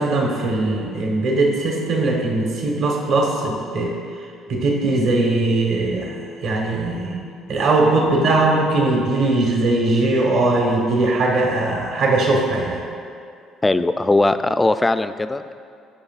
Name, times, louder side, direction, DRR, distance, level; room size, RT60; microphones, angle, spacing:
voice 1, 0.0-4.0 4.5-6.1 6.4-7.2 7.5-12.8, right 2 dB, 65° right, -1 dB, 1.1 m, -20 dB
voice 2, 13.6-15.5, left 2 dB, 15° left, 11 dB, 0.3 m, -19 dB
13.0 x 5.2 x 2.4 m, 2.4 s
supercardioid pair, 75°, 0 cm